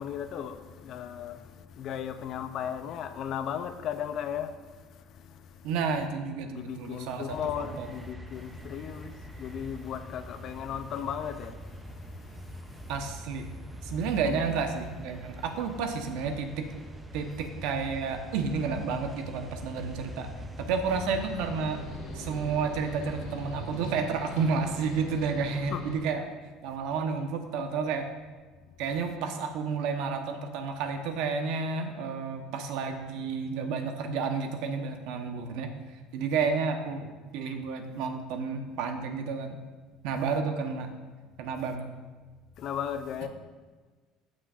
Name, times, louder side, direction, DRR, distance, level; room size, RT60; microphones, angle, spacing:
voice 1, 0.0-4.7 6.5-11.6 14.2-14.4 25.7-25.8 42.6-43.3, left 9 dB, 45° left, 0.5 m, -36 dB
voice 2, 5.6-7.4 7.8-7.9 12.9-13.4 13.8-16.6 17.1-20.3 20.6-21.8 22.1-26.2 26.6-28.1 28.8-35.7 36.1-39.6 40.0-40.9 41.4-41.9, right 5 dB, 75° right, 0.9 m, -31 dB
sound 1, 7.3-23.8, equal, 10° right, 0.6 m, -44 dB
sound 2, 20.8-26.0, left 1 dB, 90° left, 2.6 m, -41 dB
13.5 x 6.3 x 2.5 m
cardioid pair, 150°, 0 cm